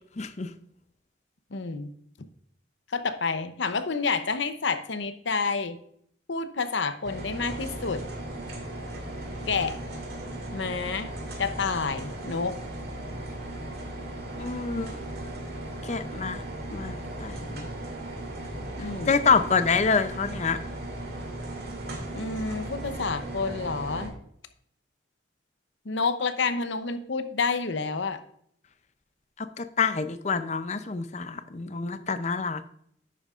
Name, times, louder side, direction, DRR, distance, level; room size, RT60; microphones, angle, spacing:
voice 1, 0.2-0.5 14.4-15.0 15.8-16.4 16.7-17.7 19.1-20.6 29.6-32.6, left 5 dB, 35° left, 10 dB, 0.5 m, -27 dB
voice 2, 1.5-1.9 2.9-5.8 6.3-8.0 9.5-9.8 10.5-11.1 11.4-12.6 18.8-19.1 22.1-24.2 25.8-28.2, left 4 dB, 70° left, 10 dB, 0.8 m, -29 dB
sound 1, 7.0-24.1, right 1 dB, 55° right, 2.3 m, -37 dB
11.0 x 8.6 x 2.5 m, 0.67 s
head